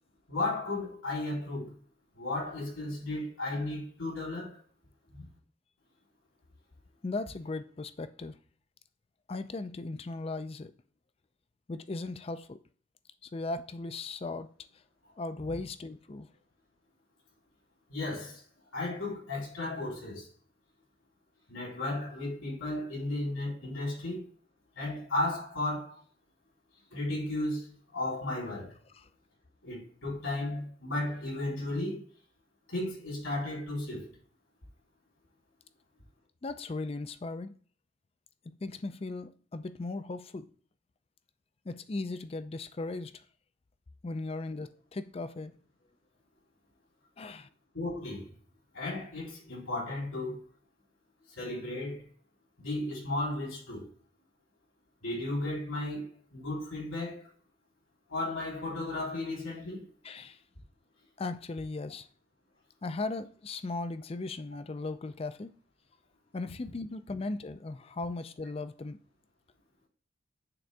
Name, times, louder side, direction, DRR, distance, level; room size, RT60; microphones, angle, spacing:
voice 1, 0.3-1.7 2.2-4.6 5.1-5.3 17.9-18.4 18.7-20.3 21.5-24.3 24.8-26.0 26.9-28.7 29.6-32.0 32.7-34.1 47.7-48.3 48.7-50.4 51.4-52.1 52.6-53.9 55.0-56.1 56.3-57.2 58.1-59.8, left 2 dB, 90° left, 3.6 m, -34 dB
voice 2, 7.0-8.4 9.3-10.7 11.7-12.6 13.2-14.5 15.2-16.3 28.9-29.1 36.4-37.5 38.5-40.5 41.7-43.2 44.0-45.5 47.2-47.5 60.0-60.4 61.2-62.1 62.8-65.5 66.3-69.0, left 3 dB, 30° left, 0.4 m, -37 dB
8.8 x 3.8 x 3.4 m
head